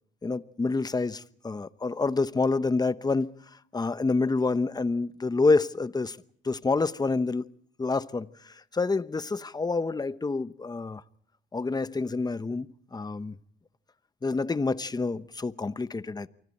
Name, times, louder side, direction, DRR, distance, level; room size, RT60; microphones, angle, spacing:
voice 1, 0.2-3.3 3.7-6.2 6.4-7.4 7.8-11.0 11.5-13.4 14.2-16.3, left 3 dB, 20° left, 0.9 m, -28 dB
29.0 x 24.5 x 4.3 m
cardioid pair, 90°, 20 cm